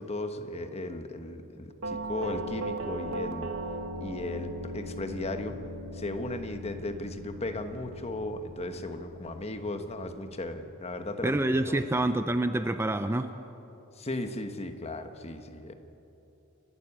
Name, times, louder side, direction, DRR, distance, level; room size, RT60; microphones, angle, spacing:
voice 1, 0.0-3.5 4.0-5.6 5.9-11.4 11.7-12.0 14.0-15.7, left 1 dB, 30° left, 7 dB, 1.3 m, -36 dB
Doorbell, 1.8-10.7, right 1 dB, 75° right, 1.4 m, -39 dB
voice 2, 11.2-13.3, right 1 dB, 10° right, 9 dB, 0.5 m, -27 dB
29.5 x 12.0 x 8.7 m, 3.0 s
head